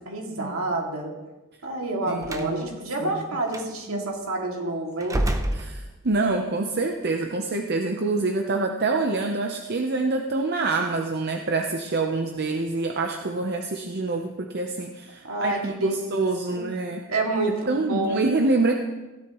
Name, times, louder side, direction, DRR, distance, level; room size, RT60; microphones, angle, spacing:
voice 1, 0.1-1.1 1.6-5.2 15.2-16.2 16.5-16.7 17.1-18.1, right 2 dB, 70° right, 0 dB, 2.4 m, -28 dB
voice 2, 2.1-2.6 3.0-3.1 3.9-4.1 5.5-17.0 17.7-18.7, right 3 dB, 50° right, 3 dB, 0.8 m, -26 dB
Slam, 2.2-2.6 3.5-3.7 5.0-6.3, right 1 dB, 15° right, 0.7 m, -28 dB
16.0 x 11.5 x 3.1 m, 1.1 s
head